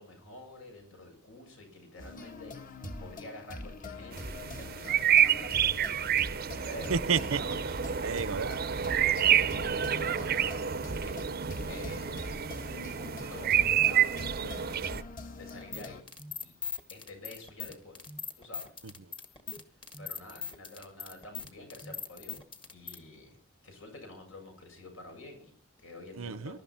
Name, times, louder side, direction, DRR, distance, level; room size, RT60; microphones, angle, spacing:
voice 1, 0.0-2.5 3.0-7.9 9.4-10.6 11.0-11.3 11.7-12.6 13.0-15.0 15.3-16.0 16.4-16.5 16.9-18.0 18.3-18.7 20.0-22.4 22.7-23.4 23.6-26.6, left 2 dB, 75° left, 3 dB, 7.3 m, -48 dB
sound 1, 2.0-16.0, left 2 dB, 40° left, 1.7 m, -44 dB
sound 2, 4.1-15.0, right 9 dB, 45° right, 0.6 m, -28 dB
voice 2, 6.9-7.4 8.0-9.1 26.2-26.6, right 5 dB, 80° right, 18 dB, 0.7 m, -31 dB
sound 3, 15.5-23.0, left 6 dB, 25° left, 1.7 m, -40 dB
22.0 x 12.0 x 4.4 m, 0.42 s
head